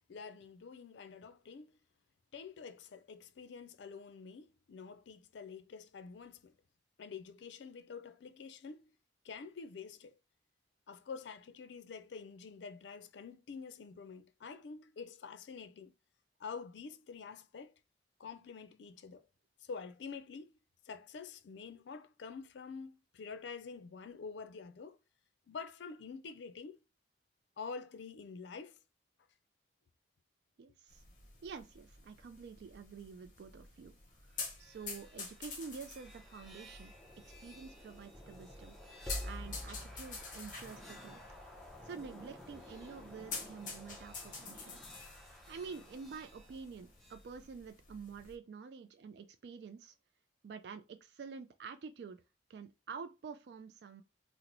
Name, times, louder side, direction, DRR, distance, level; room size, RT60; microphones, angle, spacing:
voice 1, 0.1-1.8 2.3-6.6 7.0-8.9 9.2-10.2 10.9-15.9 16.4-17.7 18.2-19.3 19.6-20.5 20.9-25.0 25.5-26.8 27.6-28.8, left 5 dB, 70° left, 0.4 m, -47 dB
voice 2, 30.6-31.0 31.4-33.9 34.2-36.9 37.4-38.8 39.2-41.2 41.8-44.8 45.5-49.9 50.4-52.2 52.5-54.0, right 5 dB, 60° right, 0.3 m, -48 dB
sound 1, 30.9-48.3, left 4 dB, 45° left, 0.8 m, -49 dB
sound 2, 34.4-47.2, equal, ahead, 0.6 m, -50 dB
2.9 x 2.0 x 3.8 m
head